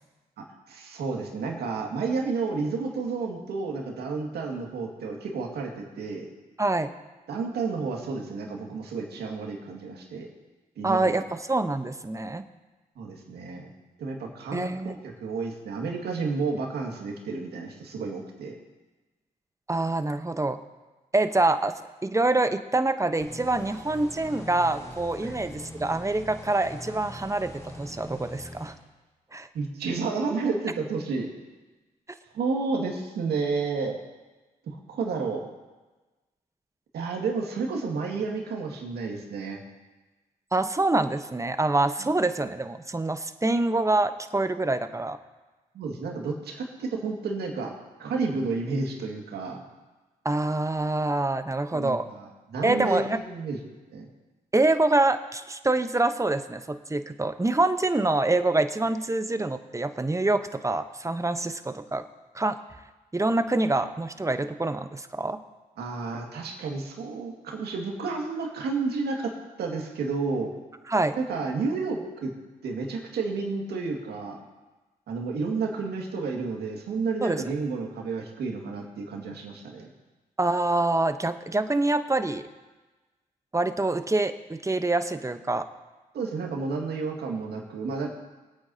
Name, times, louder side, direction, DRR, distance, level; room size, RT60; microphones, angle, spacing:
voice 1, 0.7-6.3 7.3-10.3 10.8-11.1 13.0-13.7 14.0-18.5 25.2-25.3 29.5-31.3 32.3-33.9 34.7-35.4 36.9-39.6 42.0-42.1 45.7-47.7 48.0-49.6 51.7-53.6 53.9-54.0 65.8-69.3 69.6-70.5 71.2-72.3 72.6-74.4 75.1-79.9 86.1-88.1, right 4 dB, 80° right, 0 dB, 2.1 m, -31 dB
voice 2, 6.6-6.9 10.8-12.4 14.5-15.0 19.7-20.6 21.1-21.7 22.0-28.7 29.3-29.5 40.5-45.2 50.2-52.1 52.6-53.2 54.5-62.0 62.3-62.6 63.1-65.4 70.9-71.2 77.2-77.6 80.4-82.4 83.5-85.7, right 2 dB, 20° right, 10 dB, 0.9 m, -26 dB
sound 1, 23.2-28.7, left 1 dB, 20° left, 4.5 m, -43 dB
23.0 x 8.8 x 2.8 m, 1.2 s
supercardioid pair, 45°, 16 cm